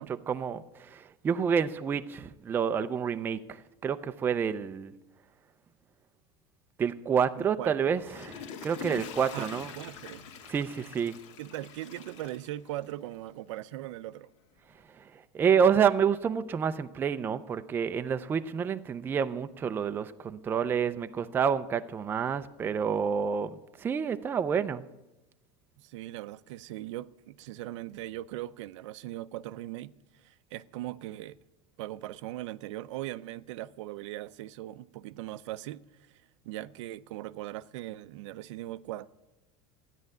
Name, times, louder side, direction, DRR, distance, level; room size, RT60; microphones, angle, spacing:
voice 1, 0.3-4.9 6.8-9.7 10.5-11.2 15.0-24.8, right 7 dB, 15° right, 0.4 m, -28 dB
voice 2, 7.4-7.7 9.3-10.3 11.4-14.3 25.8-31.4 31.8-39.1, right 15 dB, 80° right, 0.6 m, -40 dB
Water / Toilet flush, 7.8-13.1 13.6-13.7, left 7 dB, 80° left, 1.9 m, -45 dB
13.0 x 10.0 x 9.3 m
supercardioid pair, 165°, 15 cm